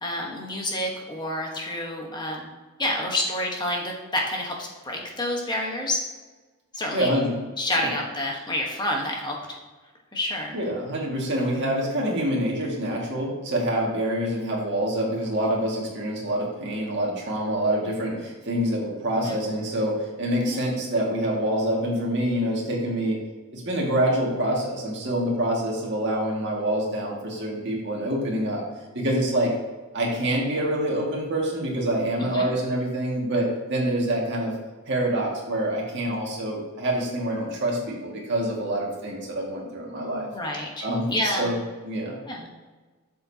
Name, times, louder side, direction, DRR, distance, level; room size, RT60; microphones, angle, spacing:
voice 1, 0.0-2.5 2.8-6.0 6.7-7.1 7.6-9.4 10.1-10.5 19.2-19.3 20.4-20.6 32.2-32.5 39.9-41.5 42.3-42.5, left 1 dB, 20° left, 0 dB, 1.1 m, -29 dB
voice 2, 6.9-7.4 7.8-7.9 10.5-23.2 23.5-28.6 28.9-29.5 29.9-34.5 34.9-40.3 40.8-41.5 41.8-42.2, right 1 dB, 50° right, -3 dB, 1.9 m, -26 dB
7.9 x 6.7 x 2.8 m, 1.3 s
head